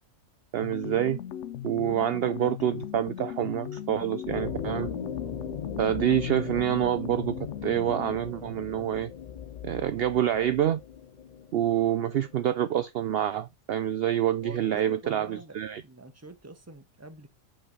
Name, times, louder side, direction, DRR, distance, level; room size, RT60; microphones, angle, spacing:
voice 1, 0.5-1.2 1.6-4.9 5.8-9.1 9.6-10.8 11.5-15.8, right 11 dB, 60° right, 0.7 m, -27 dB
sound 1, 0.6-8.3, left 11 dB, 70° left, 0.9 m, -38 dB
sound 2, 4.3-12.4, left 6 dB, 40° left, 0.7 m, -39 dB
voice 2, 14.4-17.3, right 3 dB, 15° right, 1.0 m, -46 dB
5.7 x 5.4 x 5.4 m
omnidirectional pair, 1.3 m